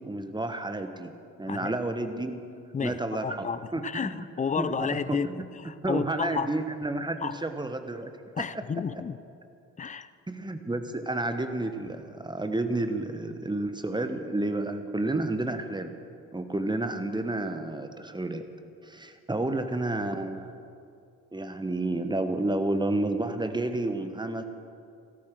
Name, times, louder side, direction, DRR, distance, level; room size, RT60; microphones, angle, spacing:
voice 1, 0.0-2.4 2.8-3.5 3.7-4.1 4.6-5.4 5.8-8.1 10.3-15.9 16.3-18.5 18.8-20.5 21.3-24.4, right 2 dB, 10° right, 8 dB, 1.2 m, -30 dB
voice 2, 2.7-6.6 7.2-7.4 8.4-9.2 9.8-10.1, left 6 dB, 20° left, 15 dB, 0.5 m, -32 dB
13.5 x 13.5 x 6.2 m, 2.5 s
figure-of-eight pair, 45°, 43 cm